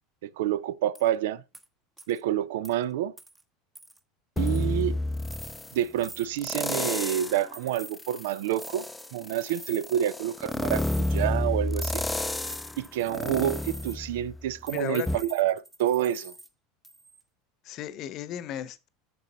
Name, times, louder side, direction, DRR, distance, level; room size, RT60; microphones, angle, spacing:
voice 1, 0.2-1.4 2.1-3.1 4.4-5.0 5.7-8.8 9.1-10.8 11.1-12.0 12.8-16.3, right 12 dB, 65° right, 0.4 m, -28 dB
sound 1, 0.9-1.1 1.5-1.7 2.0-2.2 2.6-2.7 3.2-3.4 3.8-4.0 4.5-4.8 5.2-5.5 6.0-6.3 6.8-7.1 7.5-8.0 8.5-9.1 9.5-10.1 10.5-11.3 11.8-14.0 14.7-16.5 16.8-17.2, right 1 dB, 10° right, 1.0 m, -45 dB
sound 2, 4.4-5.8 6.4-7.4 7.9-14.6 15.1-15.2, left 2 dB, 10° left, 0.5 m, -30 dB
voice 2, 14.7-15.1 17.6-18.9, left 11 dB, 45° left, 0.9 m, -35 dB
8.1 x 7.0 x 3.9 m
figure-of-eight pair, 75°, 0 cm